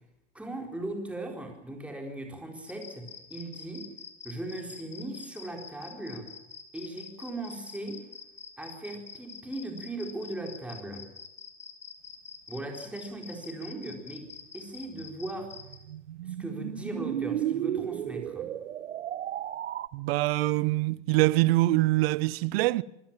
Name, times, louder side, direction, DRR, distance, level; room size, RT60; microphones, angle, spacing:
voice 1, 0.3-3.9 4.2-6.3 6.7-8.0 8.6-11.0 12.5-14.3 14.5-15.5 16.2-18.5, right 1 dB, 5° right, 4.2 m, -38 dB
sound 1, 2.7-15.8, left 6 dB, 20° left, 3.4 m, -46 dB
sound 2, 14.9-19.9, right 11 dB, 90° right, 1.1 m, -34 dB
voice 2, 19.9-22.8, right 19 dB, 55° right, 0.9 m, -24 dB
25.5 x 16.5 x 7.4 m
hypercardioid pair, 125°, 35 cm